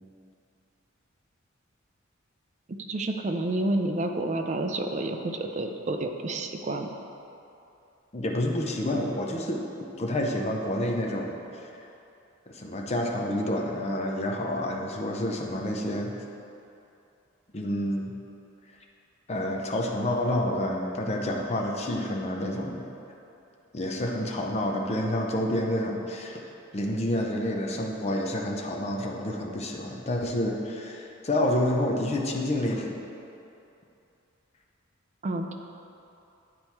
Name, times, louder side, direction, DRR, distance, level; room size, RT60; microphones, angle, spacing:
voice 1, 2.7-6.9 35.2-35.5, right 2 dB, 35° right, 4 dB, 0.4 m, -29 dB
voice 2, 8.1-9.6 10.0-11.7 12.5-16.1 17.5-18.1 19.3-22.9 23.7-26.5 26.7-33.0, left 1 dB, 30° left, 0 dB, 0.6 m, -29 dB
8.8 x 4.3 x 4.5 m, 2.7 s
head